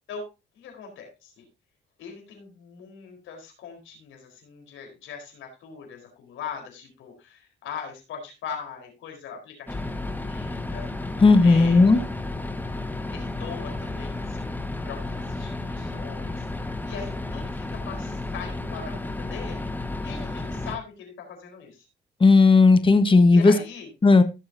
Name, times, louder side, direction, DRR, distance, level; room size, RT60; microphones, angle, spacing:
voice 1, 0.5-1.5 2.0-12.1 13.1-19.7 20.0-21.9 23.3-23.9, left 6 dB, 80° left, 2 dB, 4.5 m, -41 dB
sound 1, 9.7-20.8, left 2 dB, 10° left, 1.3 m, -32 dB
voice 2, 11.2-12.0 22.2-23.5 24.0-24.2, left 3 dB, 25° left, 10 dB, 1.4 m, -15 dB
16.5 x 6.8 x 2.8 m, 0.27 s
cardioid pair, 90°, 20 cm